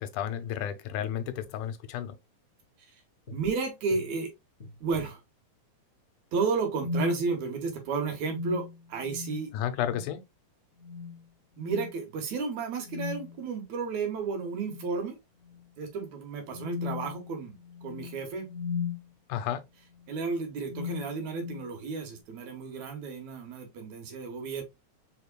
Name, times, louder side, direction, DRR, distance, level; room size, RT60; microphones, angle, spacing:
voice 1, 0.0-2.2 9.5-10.2 19.3-19.6, left 10 dB, 90° left, 2.1 m, -32 dB
sound 1, 3.3-3.4 3.9-4.1 4.6-5.1 6.7-7.3 8.2-9.5 9.8-10.1 10.8-11.2 11.6-11.9 12.8-13.4 14.5-15.0 15.4-15.6 16.5-19.1 19.9-20.2 20.6-21.7, left 5 dB, 30° left, 1.4 m, -37 dB
voice 2, 3.3-4.3 4.8-5.2 6.3-9.5 11.6-15.2 15.8-18.5 20.1-24.6, right 4 dB, 70° right, 2.5 m, -32 dB
5.0 x 3.5 x 2.2 m
omnidirectional pair, 3.5 m